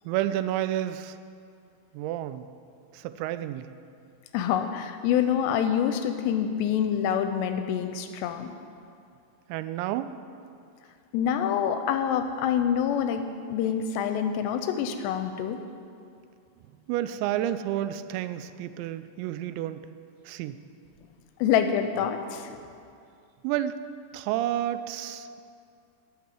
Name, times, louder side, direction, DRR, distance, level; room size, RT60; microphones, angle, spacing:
voice 1, 0.1-1.2 1.9-2.5 2.9-3.7 9.5-10.1 16.9-19.9 20.3-20.6 23.4-23.8 24.1-25.4, right 12 dB, 85° right, 12 dB, 2.8 m, -30 dB
voice 2, 4.3-8.5 11.1-15.6 21.4-22.6, left 8 dB, 80° left, 8 dB, 2.6 m, -26 dB
11.5 x 6.1 x 9.0 m, 2.4 s
omnidirectional pair, 5.1 m